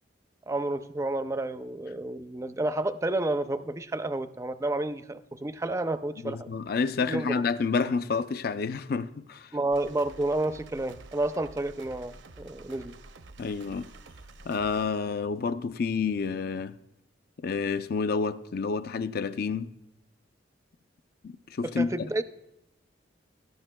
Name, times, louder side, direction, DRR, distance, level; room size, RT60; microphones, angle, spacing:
voice 1, 0.5-6.5 7.0-7.4 9.5-12.9 21.6-22.2, right 2 dB, 15° right, 0.4 m, -30 dB
voice 2, 6.2-9.5 13.4-13.9 14.5-16.8 17.4-19.7 21.2-21.9, left 5 dB, 55° left, 0.4 m, -29 dB
sound 1, 9.7-14.8, right 3 dB, 85° right, 0.7 m, -49 dB
18.5 x 12.0 x 2.2 m
head